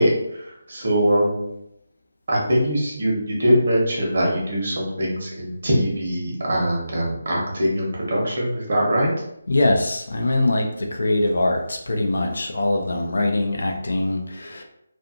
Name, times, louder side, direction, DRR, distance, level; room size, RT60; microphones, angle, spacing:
voice 1, 0.0-1.4 2.3-9.1 13.1-13.2, equal, 50° right, -3 dB, 0.9 m, -22 dB
voice 2, 9.5-14.6, left 2 dB, 60° left, 3 dB, 0.4 m, -22 dB
2.5 x 2.5 x 2.5 m, 0.79 s
figure-of-eight pair, 150°, 0 cm